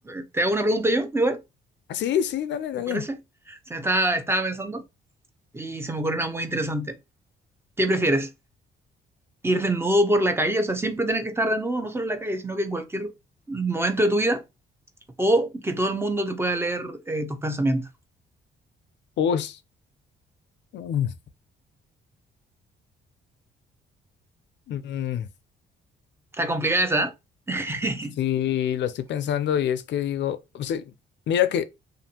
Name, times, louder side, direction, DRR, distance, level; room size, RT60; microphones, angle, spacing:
voice 1, 0.1-1.4 2.9-3.2 3.5-4.8 5.5-6.9 7.8-8.3 9.4-13.1 13.5-14.4 15.2-17.8 26.3-27.1 27.5-28.1, right 1 dB, 10° right, 0.6 m, -25 dB
voice 2, 1.9-3.1 19.2-19.6 20.7-21.1 24.7-25.3 28.2-30.9 31.3-31.7, left 9 dB, 65° left, 0.4 m, -26 dB
2.5 x 2.5 x 2.7 m
cardioid pair, 90°, 20 cm